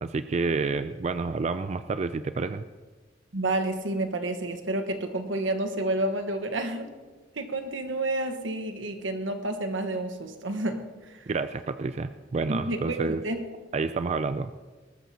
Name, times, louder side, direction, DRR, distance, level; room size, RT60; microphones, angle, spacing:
voice 1, 0.0-2.6 11.3-13.2 13.7-14.6, right 4 dB, 35° right, 11 dB, 0.3 m, -29 dB
voice 2, 3.3-6.9 7.3-11.2 12.5-13.4, right 2 dB, 85° right, 6 dB, 1.3 m, -30 dB
20.0 x 13.5 x 2.9 m, 1.3 s
head